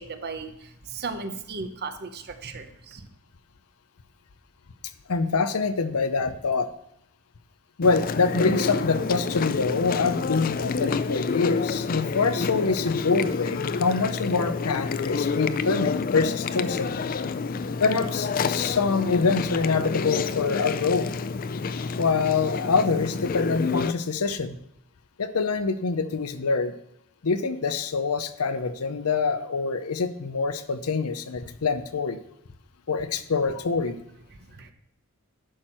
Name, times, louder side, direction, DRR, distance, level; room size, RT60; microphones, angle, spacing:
voice 1, 0.0-3.1 34.5-34.7, right 4 dB, 45° right, 8 dB, 0.8 m, -36 dB
voice 2, 5.1-6.7 7.8-16.9 17.8-21.1 22.0-24.6 25.2-26.7 27.2-32.2 32.9-34.0, left 4 dB, 80° left, 11 dB, 0.7 m, -25 dB
Chewing mastication, 7.8-23.9, left 4 dB, 40° left, 0.4 m, -28 dB
11.0 x 6.2 x 4.4 m, 0.75 s
head